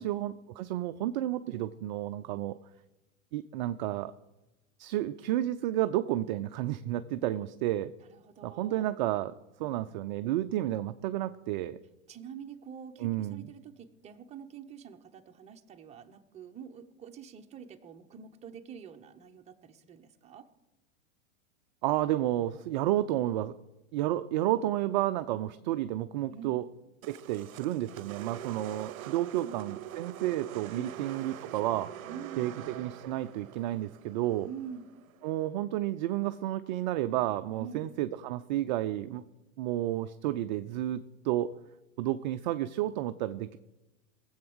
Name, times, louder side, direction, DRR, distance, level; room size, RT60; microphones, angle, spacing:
voice 1, 0.0-2.6 3.3-4.1 4.8-7.9 8.4-11.8 13.0-13.4 21.8-23.5 23.9-26.7 27.1-31.9 32.4-34.5 35.2-39.2 39.6-41.5 42.0-43.6, right 14 dB, 35° right, 10 dB, 0.4 m, -31 dB
voice 2, 8.1-8.9 9.6-9.9 12.1-20.5 26.3-26.6 29.0-29.6 30.7-30.9 32.0-32.5 34.4-34.9 37.5-37.9, right 7 dB, 15° right, 4 dB, 0.9 m, -46 dB
sound 1, 27.0-35.3, right 12 dB, 80° right, 0.6 m, -44 dB
19.0 x 7.9 x 6.2 m, 1.0 s
hypercardioid pair, 125°, 40 cm